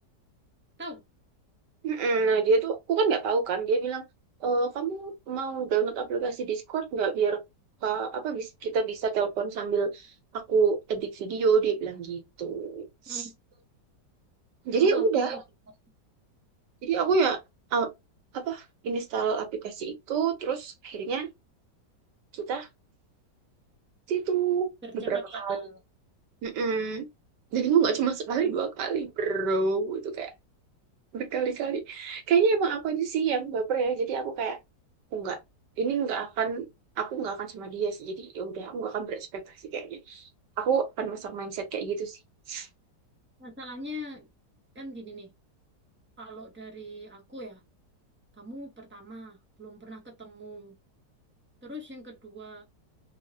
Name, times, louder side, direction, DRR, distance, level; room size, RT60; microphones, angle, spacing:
voice 1, 1.8-4.0 4.4-7.4 7.8-10.1 10.3-13.2 14.6-15.4 16.8-17.4 17.7-17.9 18.3-21.3 22.3-22.7 24.1-24.7 24.9-25.6 26.4-27.1 27.5-30.3 31.1-34.6 35.1-35.4 35.8-36.7 37.0-39.4 39.7-40.3 40.6-42.2 42.5-42.7, right 5 dB, 75° right, 1.4 m, -27 dB
voice 2, 14.7-15.4 24.8-25.8 43.4-44.3 44.7-45.3 46.2-47.6 48.3-50.7 51.6-52.6, equal, 15° right, 0.4 m, -42 dB
3.6 x 2.1 x 2.6 m
omnidirectional pair, 1.9 m